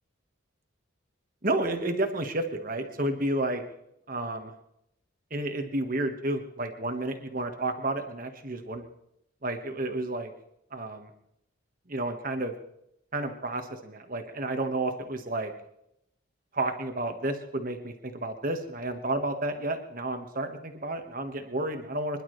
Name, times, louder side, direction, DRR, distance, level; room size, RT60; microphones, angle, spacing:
voice 1, 1.4-3.6 4.1-4.5 5.3-8.8 9.4-10.3 10.7-11.1 11.9-12.5 13.1-15.5 16.5-22.2, right 2 dB, 40° right, 6 dB, 1.6 m, -31 dB
25.0 x 11.5 x 3.3 m, 0.78 s
head